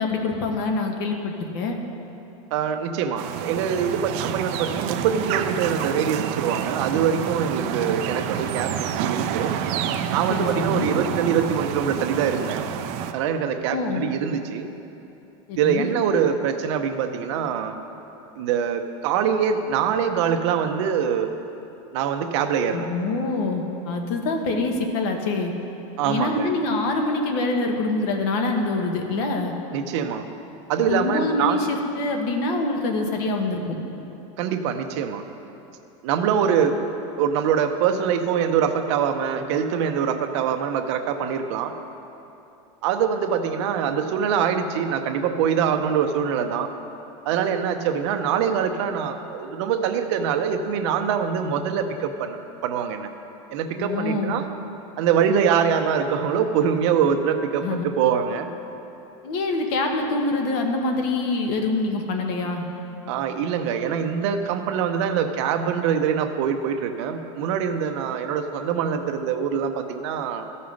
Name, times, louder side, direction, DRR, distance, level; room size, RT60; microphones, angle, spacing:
voice 1, 0.0-1.7 10.3-10.9 13.7-14.0 15.5-15.9 22.7-25.5 26.0-29.5 30.9-33.6 53.8-54.4 57.6-57.9 59.2-62.7, left 3 dB, 50° left, 3 dB, 1.2 m, -25 dB
voice 2, 2.5-9.5 10.1-12.7 13.1-14.7 15.6-17.8 18.4-21.3 21.9-22.9 26.0-26.5 29.7-30.2 30.7-31.7 34.4-35.2 36.0-36.8 37.2-41.7 42.8-46.7 47.2-53.1 53.5-54.4 55.0-58.5 63.1-70.5, right 7 dB, 60° right, 6 dB, 0.8 m, -24 dB
sound 1, 3.2-13.1, right 9 dB, 40° right, 0.5 m, -28 dB
14.0 x 5.6 x 6.4 m, 2.8 s
supercardioid pair, 170°, 17 cm